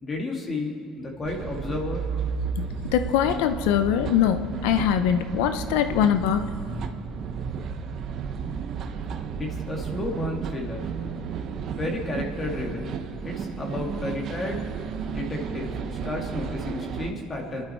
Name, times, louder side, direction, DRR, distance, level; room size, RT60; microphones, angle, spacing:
voice 1, 0.0-2.0 9.4-10.9 11.8-12.9 13.2-14.7 15.0-17.6, left 2 dB, 25° left, 0 dB, 2.3 m, -32 dB
sound 1, 1.2-17.1, right 6 dB, 50° right, 1.0 m, -33 dB
voice 2, 2.9-6.5, left 9 dB, 90° left, 9 dB, 0.7 m, -22 dB
27.5 x 11.5 x 4.6 m, 2.4 s
cardioid pair, 115°, 0 cm